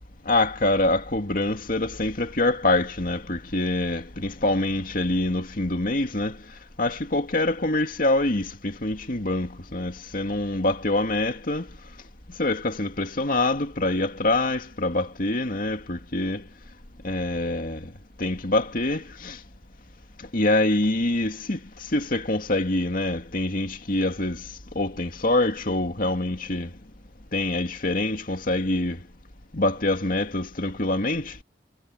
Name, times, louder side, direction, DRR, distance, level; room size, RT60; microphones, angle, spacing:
voice 1, 0.3-6.4 6.8-11.7 12.4-16.4 17.0-17.9 18.2-19.4 20.3-21.6 21.9-24.4 24.8-26.7 27.3-29.0 29.5-31.3, left 2 dB, 55° left, 2.4 m, -25 dB
head